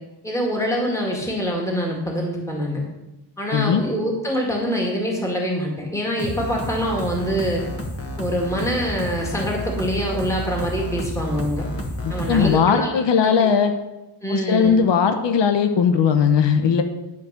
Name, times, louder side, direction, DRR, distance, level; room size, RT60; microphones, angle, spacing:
voice 1, 0.2-2.8 3.4-7.6 8.2-11.6 12.1-12.9 13.2-13.5 14.2-14.8, equal, 5° left, -2 dB, 1.9 m, -25 dB
voice 2, 3.5-3.8 12.0-13.7 14.3-16.8, left 6 dB, 75° left, 7 dB, 0.9 m, -18 dB
sound 1, 6.2-12.6, left 1 dB, 30° left, 1.4 m, -30 dB
11.5 x 4.8 x 6.6 m, 1.0 s
wide cardioid pair, 125°, 43 cm